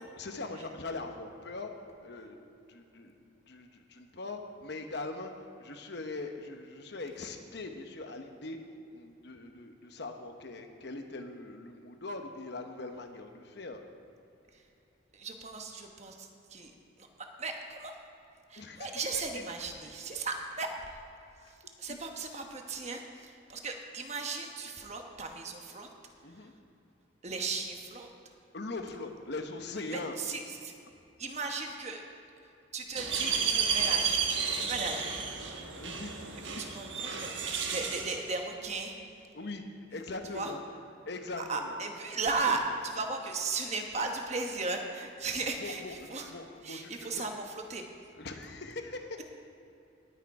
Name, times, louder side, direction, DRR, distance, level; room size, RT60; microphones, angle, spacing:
voice 1, 0.0-1.7 2.0-2.4 2.7-8.6 8.9-13.8 18.6-19.4 21.4-21.6 21.9-22.0 26.2-26.5 28.5-30.1 35.7-36.4 39.3-39.6 39.9-40.6 41.1-41.8 45.6-47.2 48.2-49.2, left 2 dB, 60° left, 5 dB, 1.0 m, -41 dB
voice 2, 15.1-16.7 17.0-17.9 18.5-21.0 21.5-25.9 26.4-26.5 27.2-28.1 29.9-30.7 31.2-32.2 32.7-35.4 36.4-39.0 40.3-40.5 41.4-46.3 46.6-47.9, right 3 dB, 35° right, 3 dB, 1.1 m, -36 dB
sound 1, 32.9-38.2, right 6 dB, 70° right, 1.2 m, -32 dB
18.5 x 6.5 x 4.8 m, 2.7 s
head